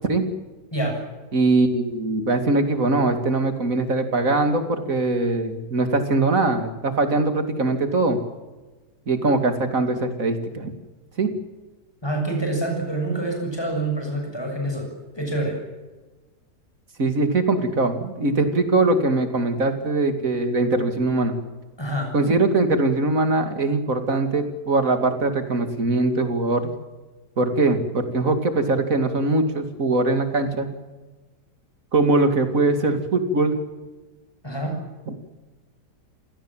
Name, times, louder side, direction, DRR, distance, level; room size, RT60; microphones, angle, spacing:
voice 1, 0.7-1.0 12.0-15.6 21.8-22.2 34.4-34.8, right 2 dB, 15° left, 2 dB, 7.1 m, -26 dB
voice 2, 1.3-8.2 9.1-10.7 11.2-11.3 17.0-21.4 22.1-26.7 27.4-30.7 31.9-33.6 35.1-35.2, right 2 dB, 50° right, 7 dB, 2.9 m, -21 dB
27.5 x 18.0 x 7.6 m, 1.2 s
omnidirectional pair, 1.8 m